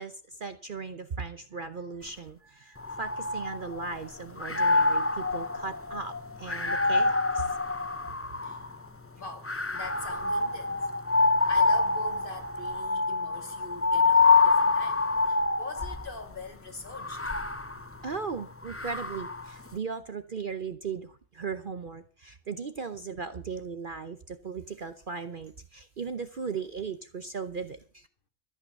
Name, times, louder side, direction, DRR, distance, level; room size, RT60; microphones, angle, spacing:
voice 1, 0.0-7.5 18.0-28.1, right 5 dB, 45° right, 0.9 m, -37 dB
sound 1, 2.8-4.0 4.4-8.8 9.4-16.1 16.9-19.5, left 3 dB, 15° left, 0.5 m, -26 dB
voice 2, 9.2-10.9 11.2-17.2, left 3 dB, 40° left, 1.9 m, -43 dB
14.0 x 8.9 x 6.5 m
omnidirectional pair, 1.4 m